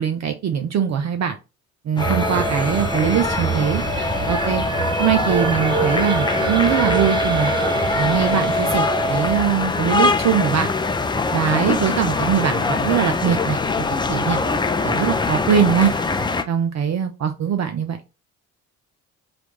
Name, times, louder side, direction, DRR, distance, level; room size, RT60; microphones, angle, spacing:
voice 1, 0.0-1.4 1.8-4.6 5.0-7.5 8.0-10.7 11.3-13.6 14.1-14.6 14.8-15.9 16.5-18.0, right 8 dB, 40° right, 0.6 m, -22 dB
sound 1, 2.0-16.4, left 3 dB, 10° left, 0.4 m, -23 dB
sound 2, 2.0-9.4, right 2 dB, 10° right, 0.8 m, -24 dB
3.3 x 3.0 x 3.7 m
hypercardioid pair, 50°, 42 cm